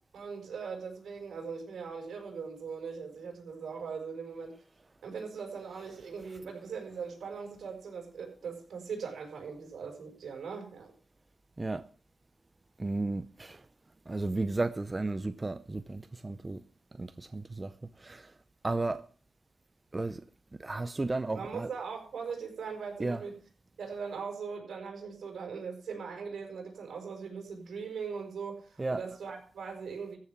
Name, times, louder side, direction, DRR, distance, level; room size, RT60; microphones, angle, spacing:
voice 1, 0.1-4.5 5.0-10.9 21.3-23.4 23.8-30.2, right 5 dB, 75° right, 5.7 m, -40 dB
voice 2, 12.8-13.7 14.1-16.6 16.9-18.3 18.6-19.0 19.9-20.2 20.6-21.7 23.0-23.2 28.8-29.0, right 2 dB, 20° right, 0.6 m, -34 dB
14.5 x 7.0 x 7.4 m
wide cardioid pair, 120°, 0 cm